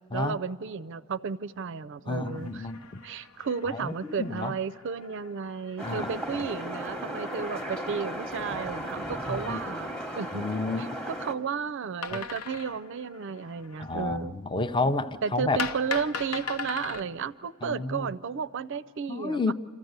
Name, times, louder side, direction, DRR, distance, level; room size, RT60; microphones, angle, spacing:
voice 1, 0.1-2.7 3.0-10.5 10.8-14.4 15.2-19.5, right 6 dB, 55° right, 18 dB, 0.4 m, -33 dB
voice 2, 2.1-3.0 3.7-4.5 5.8-6.1 9.3-9.6 10.4-10.9 12.1-12.2 13.8-15.6 17.6-18.1 19.1-19.5, left 3 dB, 20° left, 10 dB, 0.5 m, -30 dB
sound 1, 2.2-10.3 12.0-14.1 15.6-17.0, left 5 dB, 85° left, 0.8 m, -41 dB
sound 2, 5.8-11.3, equal, 5° left, 0.9 m, -35 dB
27.0 x 14.0 x 8.0 m, 2.5 s
head